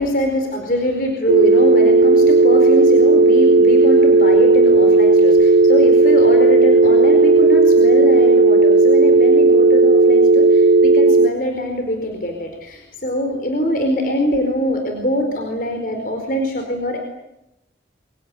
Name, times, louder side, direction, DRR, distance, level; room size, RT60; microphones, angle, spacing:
voice 1, 0.0-17.0, equal, 50° left, 4 dB, 4.5 m, -23 dB
sound 1, 1.3-11.3, right 3 dB, 70° right, 1.0 m, -12 dB
28.5 x 25.0 x 8.3 m, 0.89 s
head